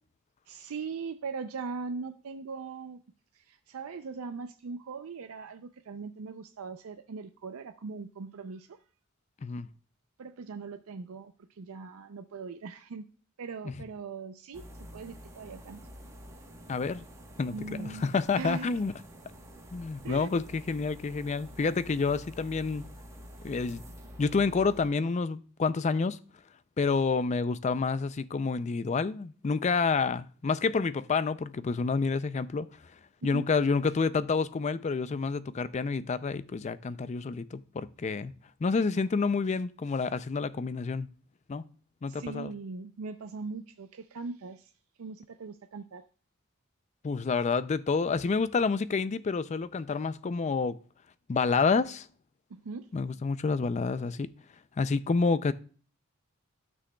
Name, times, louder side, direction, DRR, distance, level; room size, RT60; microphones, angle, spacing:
voice 1, 0.5-3.0 3.3-8.8 10.2-13.0 13.4-14.6 14.9-15.8 17.5-18.7 20.0-20.3 33.2-33.5 42.1-44.7 45.0-46.0 52.5-52.9, right 4 dB, 85° right, 0.5 m, -40 dB
sound 1, 14.5-24.9, equal, 15° right, 1.1 m, -48 dB
voice 2, 16.7-17.0 17.4-18.9 19.7-22.9 23.4-23.8 24.2-26.2 26.8-32.7 33.2-38.3 38.6-41.1 41.5-41.6 42.0-42.5 47.0-50.8 51.3-52.1 52.9-54.3 54.8-55.5, left 4 dB, 35° left, 0.4 m, -28 dB
12.5 x 6.2 x 2.2 m
head